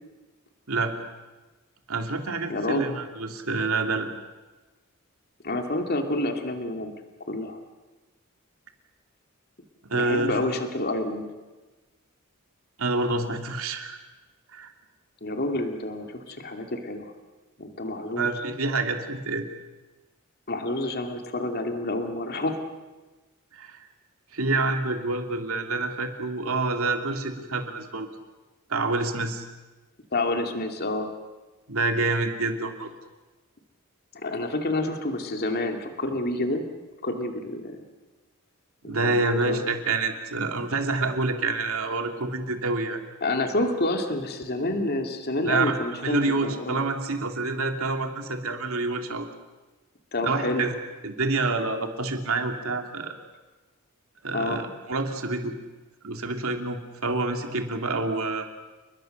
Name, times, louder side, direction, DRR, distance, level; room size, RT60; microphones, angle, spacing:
voice 1, 1.9-4.1 9.8-10.3 12.8-14.0 14.5-14.7 18.2-19.4 23.5-23.8 24.3-28.1 28.7-29.5 31.7-32.9 38.9-43.0 45.4-45.7 46.0-49.3 50.2-50.7 51.0-53.1 54.2-55.5 56.0-58.5, right 3 dB, 70° right, 5 dB, 2.8 m, -27 dB
voice 2, 2.5-3.0 5.4-6.9 7.3-7.6 9.9-11.3 15.2-17.1 17.6-18.3 20.5-22.6 30.1-31.1 34.1-36.6 37.0-37.8 38.8-39.7 43.2-46.8 50.1-50.6 54.3-54.6, left 2 dB, 45° left, 5 dB, 2.4 m, -28 dB
29.5 x 21.0 x 6.6 m, 1.2 s
head